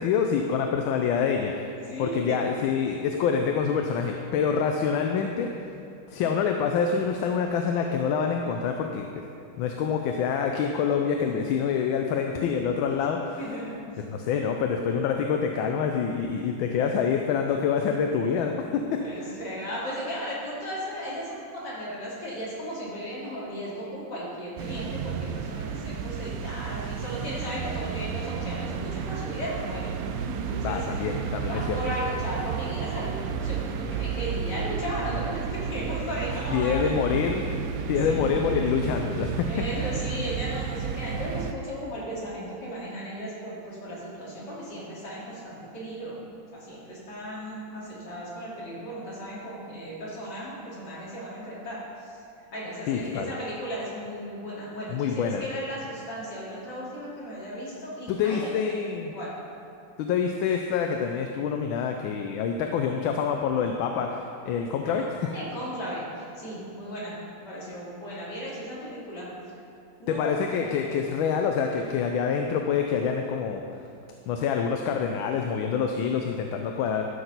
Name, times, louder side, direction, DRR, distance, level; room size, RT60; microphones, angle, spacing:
voice 1, 0.0-5.5 6.1-9.1 9.6-13.5 14.1-19.4 30.6-31.8 36.5-37.5 37.9-39.6 52.9-53.3 54.9-55.4 58.1-59.1 60.0-65.3 70.1-73.6 74.3-77.0, left 6 dB, 85° left, 3 dB, 1.4 m, -26 dB
voice 2, 1.8-2.4 13.4-13.8 19.0-30.8 31.5-36.9 38.0-38.4 39.5-46.2 46.5-52.2 52.5-58.5 59.1-59.3 64.8-65.0 65.2-69.3 70.0-70.3, equal, 60° left, -7 dB, 3.1 m, -36 dB
sound 1, 24.6-41.5, right 7 dB, 80° right, 0.8 m, -32 dB
13.0 x 6.2 x 4.0 m, 2.7 s
omnidirectional pair, 2.1 m